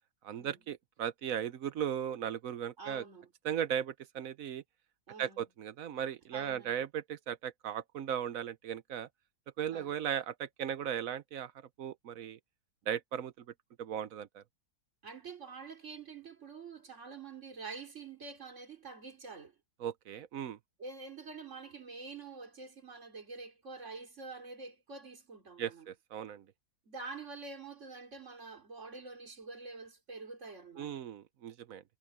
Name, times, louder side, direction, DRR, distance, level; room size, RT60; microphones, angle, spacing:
voice 1, 0.2-3.0 3.4-4.6 5.2-9.1 9.6-11.5 11.8-12.4 12.9-13.3 13.8-14.4 19.8-20.6 25.6-26.4 30.8-31.8, right 9 dB, 65° right, 1.1 m, -37 dB
voice 2, 2.8-3.3 5.1-5.4 6.3-6.8 9.7-10.0 15.0-19.5 20.8-25.9 26.9-31.0, right 4 dB, 50° right, 3.2 m, -47 dB
omnidirectional pair, 1.7 m